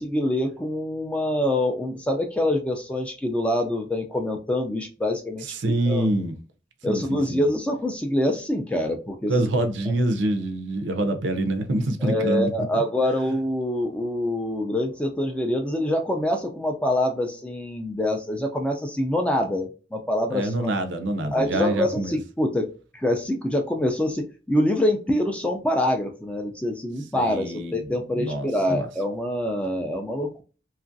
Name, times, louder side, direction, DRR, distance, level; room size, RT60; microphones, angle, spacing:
voice 1, 0.0-5.5 5.9-6.1 6.8-9.3 12.0-20.7 21.3-22.7 22.9-30.4, left 1 dB, 5° left, 0.3 m, -25 dB
voice 2, 5.4-6.3 6.8-7.4 9.3-12.8 20.3-22.2 27.1-27.9 28.2-28.9, right 1 dB, 75° right, 0.5 m, -26 dB
2.9 x 2.4 x 2.5 m
head